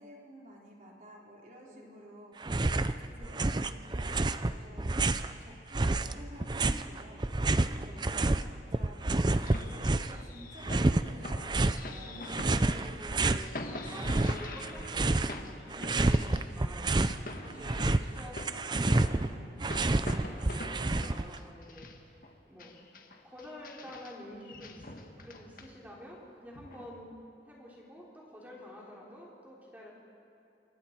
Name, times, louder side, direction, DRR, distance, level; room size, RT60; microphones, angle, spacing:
voice 1, 0.0-9.2 9.6-13.0 15.8-15.9 17.1-18.0, equal, 45° right, -3 dB, 4.1 m, -51 dB
voice 2, 1.7-2.0 7.7-8.1 12.0-22.2 22.5-22.7 23.2-24.9 25.2-29.9, equal, 10° right, -4 dB, 3.5 m, -49 dB
sound 1, 2.4-2.9 3.2-5.3 5.7-8.4 8.7-10.2 10.6-11.8 12.3-13.4 13.8-15.4 15.7-17.2 17.5-21.4, right 2 dB, 25° right, 0.5 m, -29 dB
sound 2, 9.4-16.6 16.8-22.3 22.6-26.0 26.5-26.9, left 2 dB, 50° left, 1.7 m, -45 dB
28.5 x 24.0 x 4.6 m, 2.9 s
head